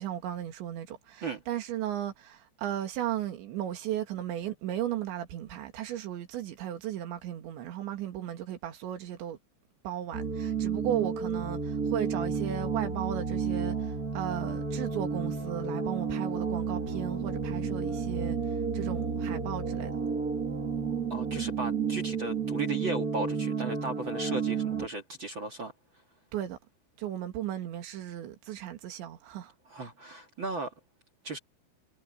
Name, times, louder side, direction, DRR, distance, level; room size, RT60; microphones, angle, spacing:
voice 1, 0.0-9.4 9.8-18.4 18.7-19.9 26.3-26.6 27.0-29.5, right 11 dB, 75° right, 4.5 m, -35 dB
sound 1, 10.1-24.9, right 5 dB, 25° right, 2.2 m, -31 dB
voice 2, 21.1-25.7 29.7-30.7 31.2-31.4, right 3 dB, 50° right, 1.5 m, -36 dB
omnidirectional pair, 5.3 m